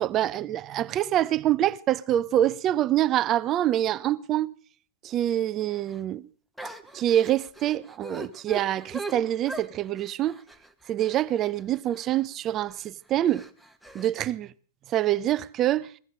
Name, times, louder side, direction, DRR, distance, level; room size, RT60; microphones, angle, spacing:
voice 1, 0.0-4.5 5.0-6.2 6.9-10.4 10.9-13.5 13.9-14.5 14.9-15.9, right 12 dB, 35° right, 0.5 m, -25 dB
sound 1, 5.7-6.0 6.6-12.2 12.7-12.9 13.3-14.1, right 2 dB, ahead, 1.0 m, -41 dB
16.5 x 14.0 x 3.8 m
hypercardioid pair, 115°, 0 cm